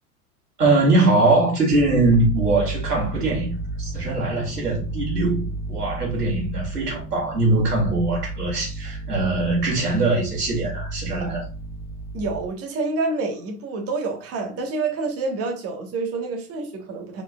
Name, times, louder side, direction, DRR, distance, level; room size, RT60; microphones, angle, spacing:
voice 1, 0.6-11.5, right 2 dB, 90° right, 2.5 m, -22 dB
sound 1, 1.7-12.5, right 2 dB, 5° left, 0.7 m, -32 dB
voice 2, 12.1-17.2, right 3 dB, 30° right, 1.3 m, -28 dB
4.6 x 4.3 x 2.3 m
hypercardioid pair, 95°, 45 cm